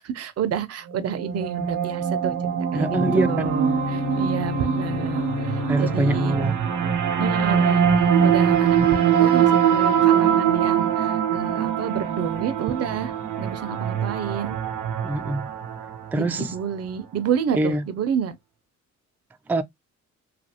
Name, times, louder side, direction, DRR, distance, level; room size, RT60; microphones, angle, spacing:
voice 1, 0.0-2.4 2.7-6.4 7.2-14.6 16.2-18.4, right 7 dB, 55° right, 0.6 m, -29 dB
sound 1, 0.9-16.2, right 8 dB, 90° right, 0.7 m, -23 dB
Bowed string instrument, 2.7-6.9, left 4 dB, 65° left, 0.8 m, -31 dB
voice 2, 2.7-3.5 5.7-6.6 15.0-15.5 16.1-16.5 17.5-17.8 19.5-19.6, right 1 dB, 5° right, 0.3 m, -24 dB
2.8 x 2.5 x 2.7 m
cardioid pair, 90°, 30 cm